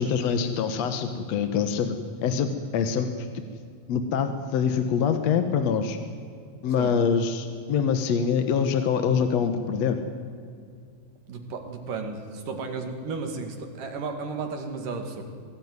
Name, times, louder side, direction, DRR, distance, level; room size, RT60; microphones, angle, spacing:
voice 1, 0.0-3.4 3.9-6.0 6.6-10.0, left 6 dB, 60° left, 8 dB, 2.0 m, -25 dB
voice 2, 11.3-15.2, right 4 dB, 65° right, 5 dB, 3.6 m, -33 dB
25.0 x 17.0 x 9.6 m, 2.3 s
omnidirectional pair, 4.2 m